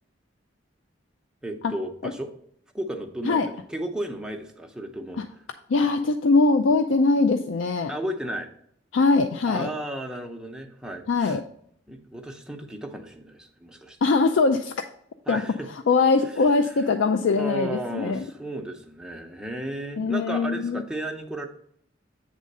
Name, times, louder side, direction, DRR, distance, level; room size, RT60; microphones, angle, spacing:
voice 1, 1.4-2.3 2.7-5.2 7.9-8.5 9.5-11.4 11.9-14.0 15.3-15.7 17.4-21.5, right 1 dB, 5° right, 2 dB, 0.7 m, -34 dB
voice 2, 5.7-7.9 8.9-9.7 11.1-11.4 14.0-14.7 15.3-15.4 15.7-18.3 20.0-20.8, left 3 dB, 85° left, 7 dB, 0.4 m, -22 dB
8.4 x 3.7 x 5.3 m, 0.69 s
head